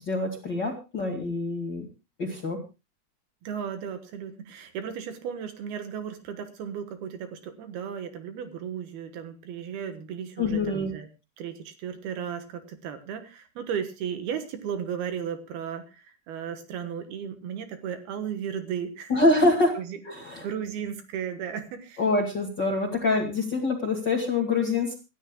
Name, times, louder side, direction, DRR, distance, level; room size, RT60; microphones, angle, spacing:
voice 1, 0.0-1.9 2.2-2.6 10.4-10.9 19.1-19.8 20.1-20.5 22.0-24.9, left 2 dB, 35° left, 1 dB, 2.0 m, -25 dB
voice 2, 3.4-11.1 11.4-19.1 19.8-20.0 20.4-22.0, right 8 dB, 70° right, 8 dB, 3.1 m, -35 dB
26.0 x 13.0 x 2.2 m, 0.29 s
omnidirectional pair, 4.8 m